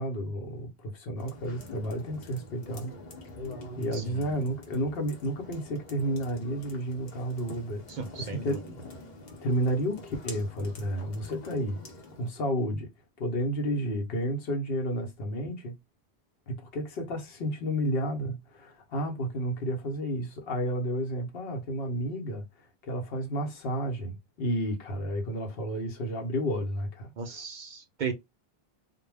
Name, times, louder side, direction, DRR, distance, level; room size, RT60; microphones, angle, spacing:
voice 1, 0.0-2.9 3.8-8.6 9.4-11.8 12.2-12.9 13.2-15.8 16.5-22.4 22.9-27.1, equal, 70° left, 0.9 m, -31 dB
sound 1, 1.2-12.3, left 1 dB, 50° left, 0.8 m, -46 dB
voice 2, 3.9-4.4 7.9-8.6 27.2-28.1, right 5 dB, 55° right, 0.6 m, -36 dB
2.1 x 2.1 x 3.2 m
omnidirectional pair, 1.0 m